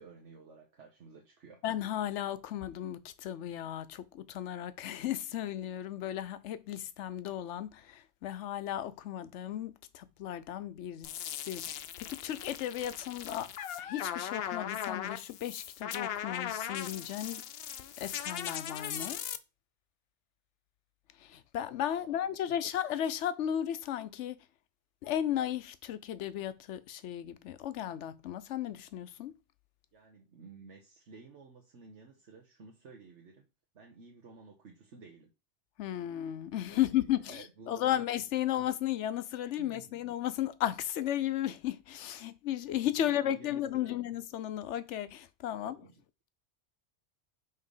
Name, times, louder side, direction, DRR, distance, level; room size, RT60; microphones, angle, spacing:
voice 1, 0.0-1.6 21.9-22.6 29.9-33.5 33.7-35.3 36.7-38.0 39.6-40.0 43.0-44.0 45.6-46.0, right 4 dB, 80° right, 1.4 m, -54 dB
voice 2, 1.6-13.5 13.8-17.4 18.0-19.2 21.2-24.4 25.0-29.3 35.8-45.8, left 11 dB, 90° left, 0.9 m, -35 dB
sound 1, 11.0-19.4, left 10 dB, 65° left, 0.7 m, -39 dB
5.5 x 3.3 x 5.4 m
omnidirectional pair, 1.2 m